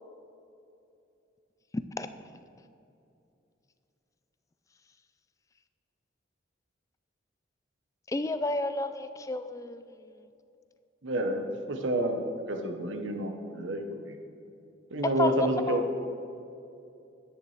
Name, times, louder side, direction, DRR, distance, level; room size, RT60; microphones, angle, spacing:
voice 1, 1.7-2.1 8.1-9.8 15.0-15.8, left 2 dB, 15° left, 11 dB, 0.3 m, -31 dB
voice 2, 11.0-12.2 12.5-14.2 14.9-16.1, right 1 dB, 85° right, 5 dB, 1.0 m, -29 dB
10.5 x 10.0 x 3.2 m, 2.7 s
head